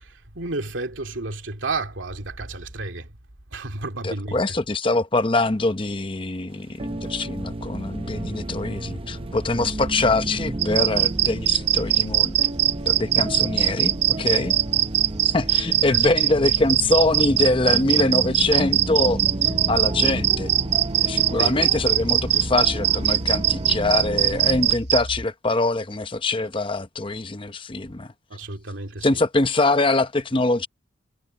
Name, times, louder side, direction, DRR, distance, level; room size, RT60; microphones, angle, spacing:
voice 1, 0.0-3.1 3.5-4.4 15.9-16.1 21.4-21.6 28.3-29.2, right 3 dB, 90° right, 2.5 m, -31 dB
voice 2, 4.0-12.4 12.9-14.6 15.2-20.5 21.0-28.1 29.0-30.7, left 2 dB, 25° left, 0.8 m, -24 dB
sound 1, 6.8-24.7, right 2 dB, 30° right, 0.6 m, -32 dB
sound 2, 7.3-25.3, equal, 75° left, 2.7 m, -38 dB
sound 3, 10.6-25.0, right 12 dB, 60° right, 0.8 m, -20 dB
head